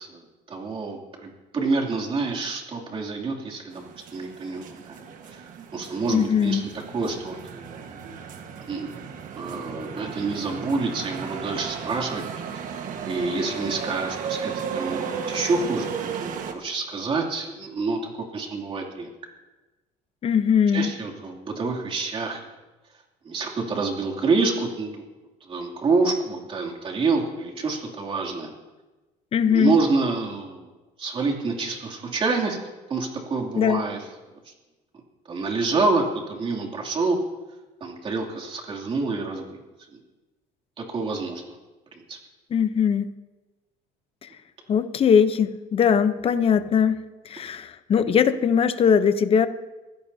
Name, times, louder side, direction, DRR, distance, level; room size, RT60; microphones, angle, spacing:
voice 1, 0.0-3.8 4.1-5.0 5.2-6.6 6.9-7.8 8.6-9.0 9.3-12.2 12.5-12.6 13.0-19.1 20.7-22.4 23.2-25.0 25.5-28.5 29.5-30.7 31.0-32.6 32.9-34.0 34.5-34.6 35.3-37.2 37.8-39.6 40.8-41.5 41.9-42.2, right 3 dB, 30° right, 0 dB, 2.8 m, -27 dB
sound 1, 3.7-16.5, right 7 dB, 55° right, 1.5 m, -35 dB
voice 2, 6.1-6.6 20.2-20.9 29.3-29.8 33.6-33.8 42.5-43.1 44.2-44.3 44.7-47.0 47.2-49.5, left 7 dB, 35° left, 11 dB, 0.8 m, -20 dB
23.5 x 16.0 x 2.8 m, 1.2 s
cardioid pair, 130°, 16 cm